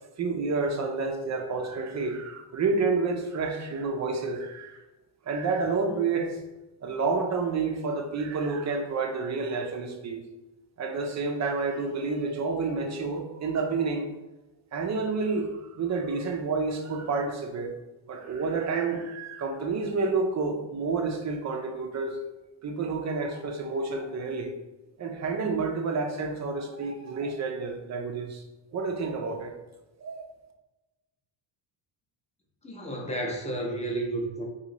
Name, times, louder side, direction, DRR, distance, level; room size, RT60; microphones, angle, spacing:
voice 1, 0.2-4.8 5.3-6.4 6.8-10.2 10.8-14.1 14.7-17.8 18.1-22.2 22.6-24.5 25.0-28.4 28.7-29.5 30.0-30.3, right 4 dB, 35° right, 0.4 m, -29 dB
voice 2, 32.6-34.4, right 1 dB, 15° left, 0.6 m, -31 dB
3.0 x 2.7 x 3.8 m
cardioid pair, 135°, 50 cm